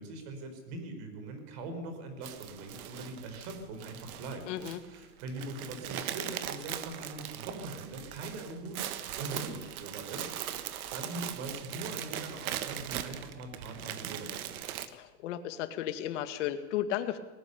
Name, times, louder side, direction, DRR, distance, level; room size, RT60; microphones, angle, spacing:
voice 1, 0.0-4.5 4.9-8.9 9.1-14.6, right 2 dB, 40° right, 7 dB, 4.5 m, -42 dB
sound 1, 2.2-14.9, right 11 dB, 60° right, 1.6 m, -40 dB
voice 2, 4.5-4.8 14.9-17.2, left 11 dB, 45° left, 9 dB, 1.8 m, -34 dB
19.5 x 19.5 x 6.9 m, 1.1 s
supercardioid pair, 165°, 48 cm